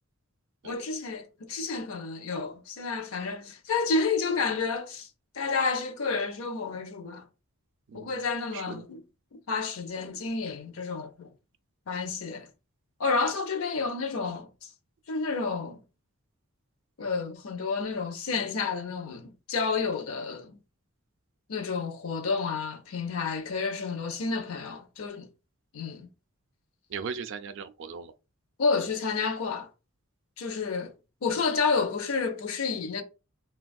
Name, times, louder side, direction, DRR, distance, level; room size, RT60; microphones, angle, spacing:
voice 1, 0.6-5.1 5.3-7.3 7.9-9.0 9.5-11.3 11.9-12.5 13.0-14.7 15.1-15.8 17.0-20.6 21.5-25.3 25.7-26.1 28.6-29.7 30.4-30.9 31.2-33.0, left 4 dB, 70° left, 0.6 m, -30 dB
voice 2, 7.9-8.2 8.5-8.8 26.9-28.1, right 6 dB, 60° right, 0.3 m, -38 dB
3.4 x 2.2 x 2.2 m
head